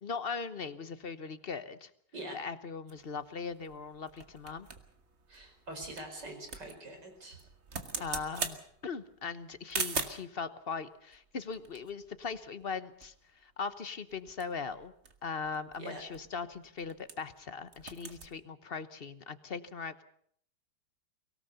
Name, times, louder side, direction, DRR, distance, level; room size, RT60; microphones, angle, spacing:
voice 1, 0.0-1.9 2.3-4.7 8.0-8.6 8.8-13.1 13.4-14.9 15.2-20.0, left 5 dB, 40° left, 12 dB, 1.1 m, -39 dB
sound 1, 2.9-10.3 11.1-12.8 13.0-13.1 13.4-13.7 14.1-17.4 17.7-18.3, right 4 dB, 40° right, 1.8 m, -42 dB
voice 2, 5.3-7.4 15.8-16.0, right 1 dB, 75° right, 5 dB, 5.4 m, -44 dB
24.0 x 17.5 x 6.8 m, 0.64 s
omnidirectional pair, 1.9 m